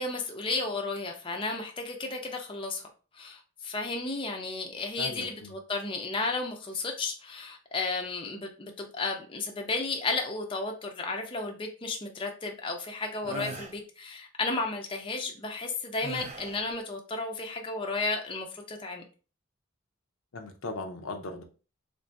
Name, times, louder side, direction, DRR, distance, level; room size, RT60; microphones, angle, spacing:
voice 1, 0.0-2.8 3.2-19.0, left 3 dB, 25° left, 3 dB, 0.5 m, -33 dB
voice 2, 5.0-5.5 13.2-13.6 20.3-21.4, left 2 dB, 75° left, 4 dB, 0.7 m, -38 dB
sound 1, 13.2-13.8 16.0-16.7, right 3 dB, 30° right, 0.5 m, -39 dB
3.6 x 2.6 x 3.3 m, 0.36 s
head